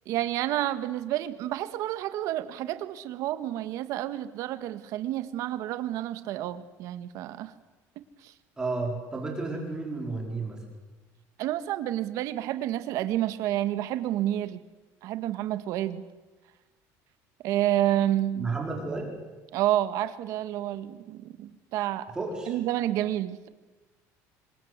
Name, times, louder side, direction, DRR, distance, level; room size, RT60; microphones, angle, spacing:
voice 1, 0.1-7.5 11.4-14.6 15.0-16.0 17.4-18.5 19.5-22.1 22.5-23.5, right 13 dB, 60° right, 12 dB, 1.8 m, -29 dB
voice 2, 8.6-10.6 18.3-19.1 22.1-22.6, right 3 dB, 10° right, 0 dB, 4.8 m, -32 dB
26.5 x 23.5 x 8.3 m, 1.2 s
cardioid pair, 160°, 6 cm